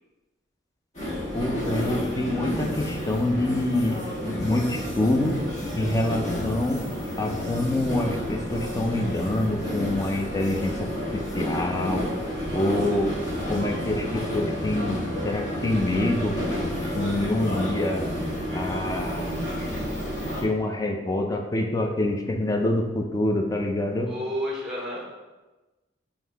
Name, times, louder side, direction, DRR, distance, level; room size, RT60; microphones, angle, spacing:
sound 1, 0.9-20.4, equal, 40° left, 1.3 m, -30 dB
voice 1, 1.3-5.4 5.7-6.8 7.2-12.1 12.5-13.1 13.5-16.4 16.8-18.1 18.5-19.4 20.4-24.1, left 1 dB, 20° left, 3 dB, 0.4 m, -26 dB
voice 2, 24.1-25.0, equal, ahead, -4 dB, 1.0 m, -30 dB
5.5 x 2.7 x 3.3 m, 1.1 s
head